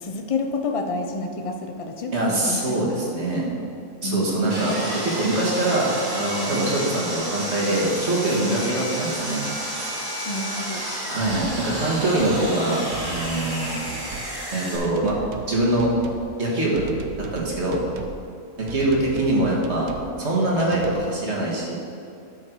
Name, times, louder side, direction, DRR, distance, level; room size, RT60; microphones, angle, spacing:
voice 1, 0.0-2.8 4.0-4.4 10.3-10.8 14.2-14.3, left 3 dB, 40° left, 5 dB, 0.5 m, -29 dB
voice 2, 2.1-3.5 4.0-9.4 11.1-13.8 14.5-15.2 15.5-15.9 16.4-16.9 17.2-17.8 18.6-19.9 20.2-21.7, right 1 dB, 50° right, -4 dB, 2.0 m, -23 dB
Sawing, 4.5-14.8, equal, 15° right, 1.6 m, -31 dB
sound 1, 11.2-11.7 12.0-12.4 12.9-13.6 13.9-14.4 14.8-15.5 15.8-16.3 16.8-18.2 18.7-19.4 19.6-20.1 20.6-21.0, right 6 dB, 85° right, 1.2 m, -37 dB
10.0 x 6.8 x 4.6 m, 2.6 s
omnidirectional pair, 1.4 m